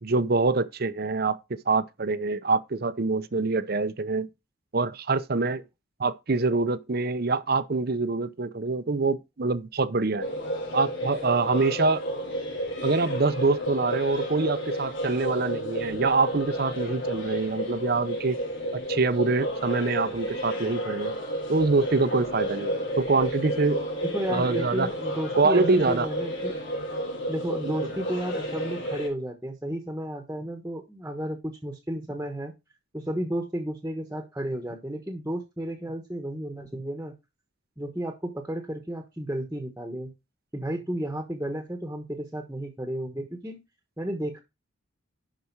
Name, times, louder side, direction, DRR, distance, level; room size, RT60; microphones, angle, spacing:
voice 1, 0.0-4.3 4.7-5.6 6.0-10.3 10.7-12.0 12.8-18.4 18.7-21.1 21.5-23.9 24.3-24.9 25.3-26.1 27.6-27.8, right 3 dB, 45° right, 0.7 m, -25 dB
sound 1, 10.2-29.1, equal, 60° left, 4.2 m, -31 dB
voice 2, 24.0-26.6 27.3-32.5 32.9-37.1 37.8-40.1 40.5-43.6 44.0-44.4, right 1 dB, 10° right, 1.2 m, -33 dB
11.0 x 4.9 x 4.6 m
head